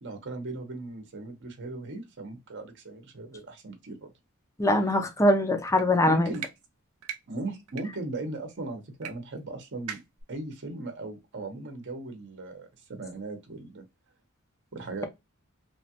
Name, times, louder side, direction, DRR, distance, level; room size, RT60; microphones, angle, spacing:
voice 1, 0.0-4.1 6.0-6.5 7.3-10.0 10.3-13.8 14.7-15.0, right 2 dB, 55° right, 0.8 m, -38 dB
voice 2, 4.6-6.3, left 1 dB, 15° left, 0.5 m, -22 dB
sound 1, 5.7-5.9 6.3-6.5 7.0-7.2 7.7-7.8 9.0-9.1 9.4-9.5 9.9-10.2, right 8 dB, 85° right, 0.6 m, -38 dB
3.1 x 2.2 x 2.8 m
head